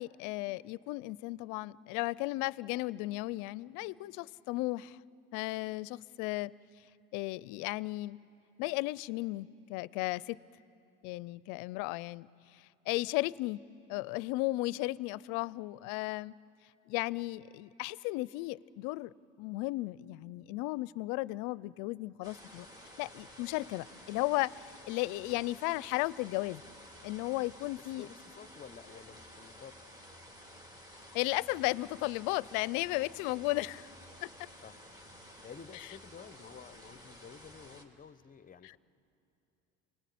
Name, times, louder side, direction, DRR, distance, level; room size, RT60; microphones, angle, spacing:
voice 1, 0.0-5.0 5.3-6.5 7.1-8.2 8.6-10.4 11.0-12.3 12.9-13.6 13.9-16.3 16.9-22.7 23.0-26.6 27.0-28.1 31.1-33.9 34.2-34.3 38.6-38.7, left 20 dB, 65° left, 0.6 m, -35 dB
sound 1, 22.2-37.8, equal, 10° right, 2.9 m, -53 dB
voice 2, 27.8-29.8 33.1-33.5 34.6-34.8 35.4-38.8, left 7 dB, 25° left, 0.9 m, -52 dB
28.0 x 20.0 x 8.5 m
supercardioid pair, 100°, 34 cm